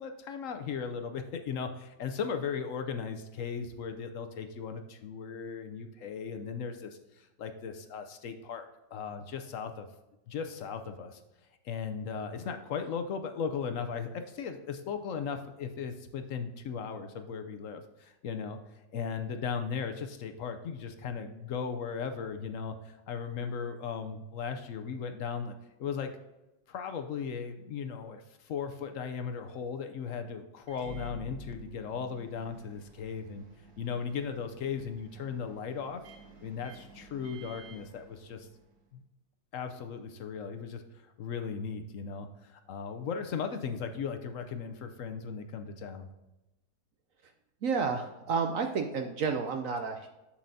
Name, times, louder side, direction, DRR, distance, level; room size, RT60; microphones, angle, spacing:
voice 1, 0.0-8.7 8.9-9.9 10.3-11.2 11.6-18.6 18.9-25.5 25.8-26.1 26.7-33.4 33.8-36.0 36.4-38.5 38.9-39.0 39.5-46.1, left 6 dB, 65° left, 7 dB, 0.8 m, -37 dB
Microwave oven, 30.6-38.8, right 4 dB, 85° right, 1.8 m, -52 dB
voice 2, 47.6-50.1, right 5 dB, 70° right, 5 dB, 0.8 m, -31 dB
7.5 x 7.1 x 2.7 m, 0.99 s
omnidirectional pair, 1.9 m